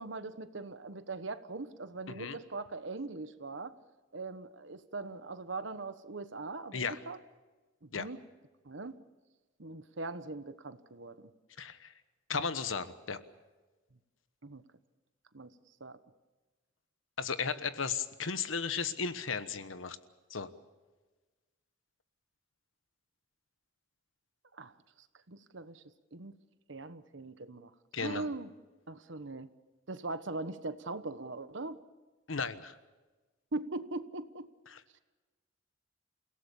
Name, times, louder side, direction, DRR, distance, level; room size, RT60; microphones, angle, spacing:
voice 1, 0.0-3.7 4.1-7.2 7.8-8.2 8.6-9.0 9.6-11.3 14.4-14.6 15.3-15.5 15.8-16.0 24.5-24.7 25.3-25.8 26.1-26.3 26.7-27.7 28.0-28.5 28.9-29.5 29.9-31.8 33.5-34.5, right 3 dB, 65° right, 12 dB, 1.2 m, -41 dB
voice 2, 11.6-11.9 12.3-13.2 17.2-20.0 20.3-20.5 27.9-28.3 32.3-32.8 34.7-34.8, left 5 dB, 85° left, 12 dB, 1.2 m, -35 dB
29.0 x 17.0 x 7.1 m, 1.2 s
head